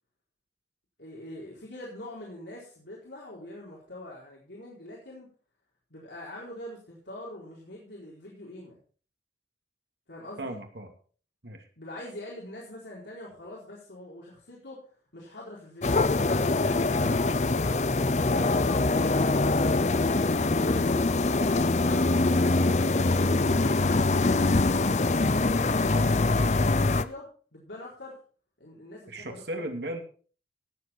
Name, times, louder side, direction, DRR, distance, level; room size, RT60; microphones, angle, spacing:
voice 1, 1.0-5.3 5.9-8.8 10.1-10.6 11.8-14.8 15.1-15.9 16.5-17.6 18.3-20.1 20.4-22.5 24.2-28.2 28.6-29.6, left 1 dB, 80° left, -5 dB, 4.3 m, -43 dB
voice 2, 10.4-10.9 11.4-11.7 17.0-17.2 23.5-23.8 29.1-30.0, right 1 dB, 70° right, 4 dB, 2.6 m, -37 dB
sound 1, 15.8-27.0, left 3 dB, 40° left, 0.6 m, -24 dB
18.0 x 7.8 x 4.5 m, 0.41 s
head